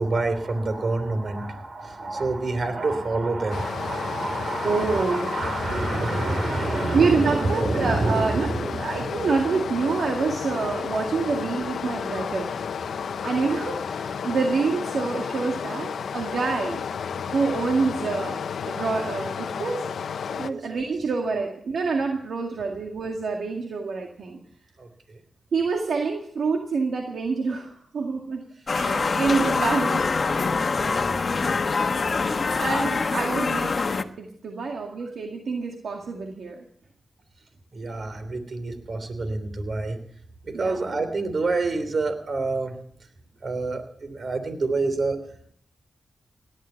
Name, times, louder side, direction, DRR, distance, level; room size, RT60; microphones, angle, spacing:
voice 1, 0.0-9.1 12.9-13.3 20.4-20.8 24.8-25.2 30.7-31.7 37.7-40.0 40.4-42.8 43.4-45.2, right 3 dB, 55° right, 9 dB, 3.3 m, -28 dB
Stream, 3.5-20.5, left 7 dB, 80° left, 0.8 m, -32 dB
voice 2, 4.6-5.3 6.2-6.4 6.9-8.5 8.8-12.5 13.2-16.8 17.3-18.4 18.7-19.8 20.3-24.4 25.5-28.4 28.7-30.0 32.1-33.7 34.2-36.6 40.5-41.0, right 4 dB, 75° right, 1 dB, 2.0 m, -27 dB
sound 1, 28.7-34.0, left 4 dB, 50° left, 1.1 m, -24 dB
18.0 x 11.0 x 5.8 m, 0.64 s
cardioid pair, 65°, 0 cm